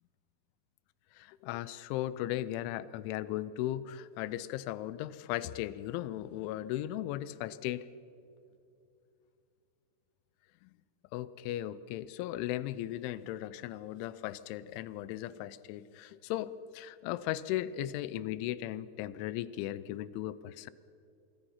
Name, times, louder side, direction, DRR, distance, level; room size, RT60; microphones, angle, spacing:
voice 1, 1.2-7.9 10.6-10.7 11.1-20.7, left 13 dB, 90° left, 17 dB, 3.1 m, -37 dB
25.5 x 24.0 x 5.7 m, 2.6 s
omnidirectional pair, 5.3 m